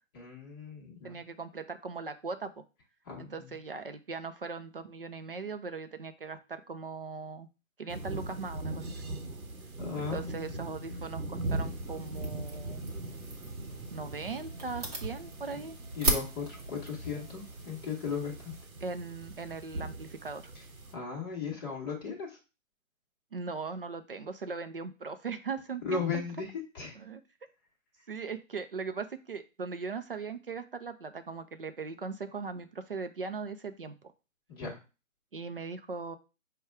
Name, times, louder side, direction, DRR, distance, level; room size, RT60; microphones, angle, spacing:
voice 1, 0.1-1.2 3.0-3.6 9.8-10.7 16.0-18.5 20.5-20.6 20.9-22.4 25.8-27.0 34.5-34.8, left 5 dB, 15° left, -3 dB, 1.0 m, -37 dB
voice 2, 1.0-2.6 3.2-7.5 7.8-9.0 10.0-12.8 13.9-15.8 18.8-20.4 23.3-26.0 27.0-27.2 28.1-33.9 35.3-36.2, right 4 dB, 45° right, 9 dB, 0.4 m, -39 dB
sound 1, 7.9-20.9, right 2 dB, 90° right, 0.9 m, -40 dB
sound 2, 11.4-18.6, right 2 dB, 30° right, 0.9 m, -38 dB
5.1 x 2.3 x 4.6 m, 0.31 s
figure-of-eight pair, 145°, 41 cm